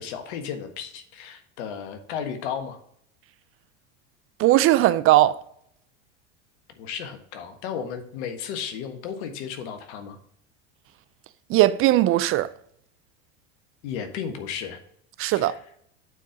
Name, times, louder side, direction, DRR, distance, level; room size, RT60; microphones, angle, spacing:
voice 1, 0.0-2.8 6.8-10.2 13.8-14.8 15.3-15.5, left 7 dB, 65° left, 1.5 m, -34 dB
voice 2, 4.4-5.4 11.5-12.5 15.2-15.6, right 15 dB, 40° right, 0.4 m, -19 dB
8.9 x 4.5 x 5.0 m
hypercardioid pair, 85°, 35 cm